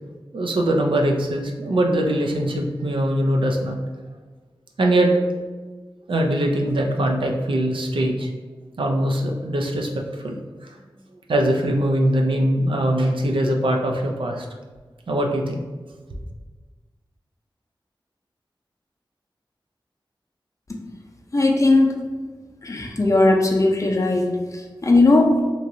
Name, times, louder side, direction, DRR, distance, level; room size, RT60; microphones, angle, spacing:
voice 1, 0.3-3.8 4.8-5.2 6.1-8.3 8.8-10.4 10.6-10.8 11.3-14.5 15.1-15.6, right 1 dB, 75° right, 1 dB, 0.5 m, -22 dB
voice 2, 21.3-22.0 22.6-25.5, left 2 dB, 35° left, 1 dB, 0.5 m, -18 dB
3.0 x 2.6 x 2.6 m, 1.4 s
cardioid pair, 45°, 9 cm